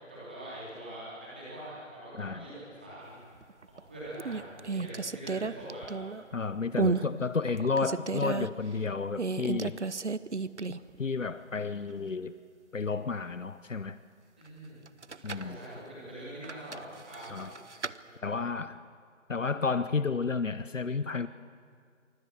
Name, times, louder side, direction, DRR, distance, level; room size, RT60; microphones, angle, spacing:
voice 1, 0.1-3.3 3.7-5.8 14.3-14.8 15.2-17.4 18.0-18.4, right 1 dB, 5° right, -9 dB, 3.0 m, -44 dB
sound 1, 3.4-3.8 4.2-6.3 6.8-7.1 7.5-8.5 9.2-11.0 11.3-11.4 14.9-15.5 16.4-18.0, right 4 dB, 60° right, 0.7 m, -32 dB
voice 2, 6.3-9.8 11.0-12.3 12.7-14.0 15.2-15.6 17.3-17.5 18.2-18.8 19.3-21.3, left 4 dB, 70° left, 14 dB, 0.8 m, -31 dB
24.5 x 19.0 x 7.6 m, 2.2 s
figure-of-eight pair, 175°, 39 cm